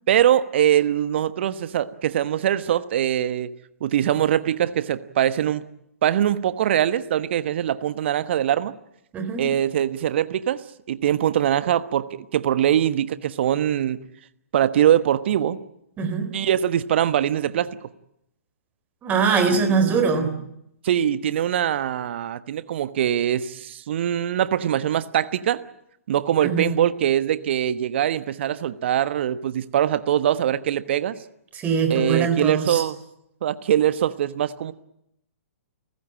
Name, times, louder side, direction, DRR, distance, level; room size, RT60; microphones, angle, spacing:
voice 1, 0.1-3.5 3.8-5.6 6.0-8.7 9.4-10.6 10.9-14.0 14.5-15.6 16.3-17.7 19.9-20.0 20.8-25.6 26.1-31.2 31.9-33.0 33.4-34.7, right 10 dB, 50° right, 14 dB, 1.2 m, -22 dB
voice 2, 9.1-9.5 16.0-16.3 19.0-20.3 26.4-26.7 31.5-32.8, right 5 dB, 20° right, 7 dB, 3.9 m, -22 dB
29.5 x 15.5 x 8.9 m, 0.78 s
figure-of-eight pair, 120°, 8 cm